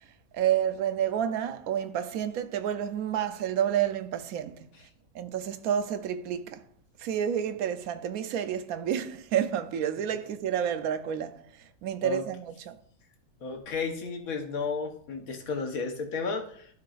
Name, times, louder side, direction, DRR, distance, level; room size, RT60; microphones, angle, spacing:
voice 1, 0.3-4.7 5.1-6.6 7.0-12.8, right 9 dB, 85° right, 1.1 m, -30 dB
voice 2, 13.4-16.7, left 4 dB, 75° left, 1.5 m, -33 dB
13.0 x 4.7 x 2.5 m
omnidirectional pair, 1.5 m